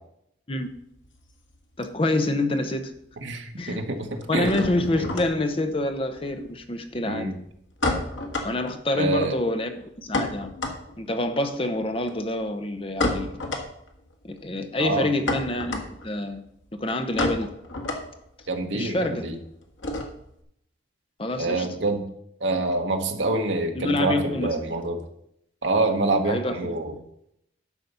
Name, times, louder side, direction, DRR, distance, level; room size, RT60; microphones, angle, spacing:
sound 1, 0.5-2.2 2.4-3.1 3.4-20.4, left 2 dB, 85° left, 1.7 m, -32 dB
voice 1, 1.8-2.9 3.6-3.8 4.3-7.3 8.4-10.5 11.0-13.3 14.2-16.4 16.8-17.5 18.7-19.3 21.2-21.7 23.7-24.8 26.3-26.8, left 2 dB, 30° left, 7 dB, 0.9 m, -27 dB
voice 2, 3.2-4.1 4.3-4.5 5.0-5.1 7.1-7.4 8.9-9.3 14.8-15.1 18.5-19.0 19.2-19.4 21.3-22.1 22.4-25.0 25.6-26.9, right 2 dB, 70° right, 3 dB, 1.2 m, -26 dB
11.5 x 4.1 x 6.8 m, 0.74 s
head